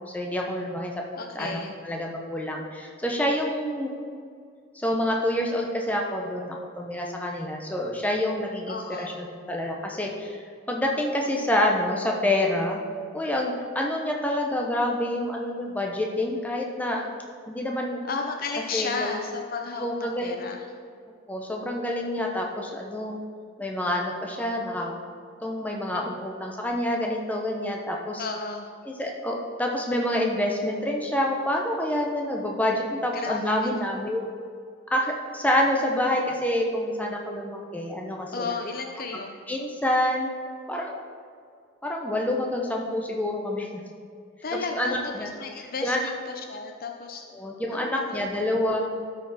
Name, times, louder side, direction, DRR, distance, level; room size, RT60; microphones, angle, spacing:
voice 1, 0.1-1.0 1.3-1.6 1.8-3.9 4.7-12.8 13.1-17.1 17.5-18.0 18.7-19.2 19.8-20.5 21.3-23.2 23.6-24.9 25.4-28.2 28.9-34.3 34.9-38.5 39.5-40.3 40.7-41.0 41.8-43.8 44.5-45.3 45.8-46.1 47.4-49.0, left 1 dB, 5° left, 0 dB, 0.8 m, -27 dB
voice 2, 1.1-1.8 8.6-9.2 18.0-20.7 28.2-28.7 33.1-33.9 38.3-39.4 44.4-48.2, left 4 dB, 45° left, 4 dB, 0.6 m, -34 dB
12.5 x 5.1 x 4.1 m, 2.2 s
head